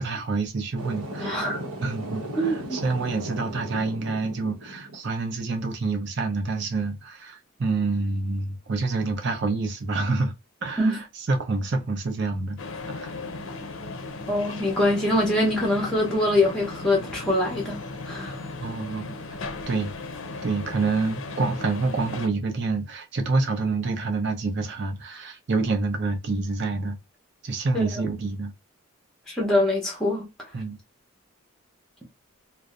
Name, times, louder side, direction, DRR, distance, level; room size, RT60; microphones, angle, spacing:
voice 1, 0.0-1.3 1.8-10.3 10.6-12.6 13.0-13.1 18.6-19.2 19.7-19.9 20.4-27.0 27.4-28.5 30.5-30.8, right 3 dB, 50° right, 0.6 m, -27 dB
sound 1, 0.8-5.0, right 1 dB, 85° right, 0.8 m, -36 dB
voice 2, 1.2-1.6 2.4-2.8 10.8-11.0 14.3-17.8 18.1-18.4 27.7-27.9 29.3-30.3, left 1 dB, 5° left, 0.6 m, -23 dB
sound 2, 12.6-22.3, left 3 dB, 60° left, 0.5 m, -36 dB
2.6 x 2.0 x 2.3 m
head